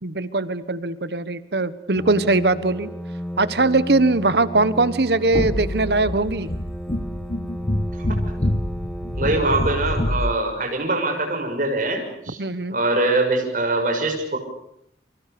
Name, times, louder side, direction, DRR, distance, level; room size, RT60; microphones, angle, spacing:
voice 1, 0.0-2.9 3.4-6.5 12.4-12.7, right 3 dB, 65° right, 14 dB, 1.2 m, -21 dB
sound 1, 1.9-10.1, equal, ahead, 1.8 m, -34 dB
sound 2, 5.3-10.3, left 1 dB, 35° left, 1.2 m, -26 dB
voice 2, 9.2-12.4 12.7-14.4, right 2 dB, 50° right, 2 dB, 6.7 m, -23 dB
30.0 x 25.0 x 6.9 m, 0.76 s
head